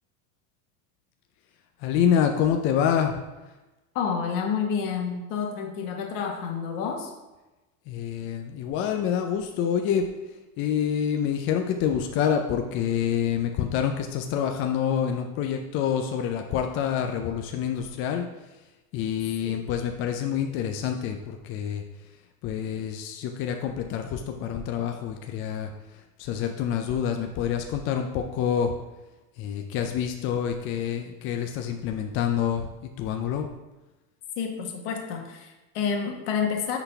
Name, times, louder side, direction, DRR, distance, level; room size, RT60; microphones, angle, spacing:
voice 1, 1.8-3.1 7.9-10.1 10.6-18.2 18.9-21.8 22.4-28.7 29.4-32.7 33.0-33.5, left 8 dB, 30° left, 4 dB, 0.4 m, -27 dB
voice 2, 3.9-7.1 34.4-36.8, left 6 dB, 55° left, 3 dB, 1.4 m, -29 dB
9.9 x 4.0 x 3.4 m, 1.1 s
supercardioid pair, 120°, 47 cm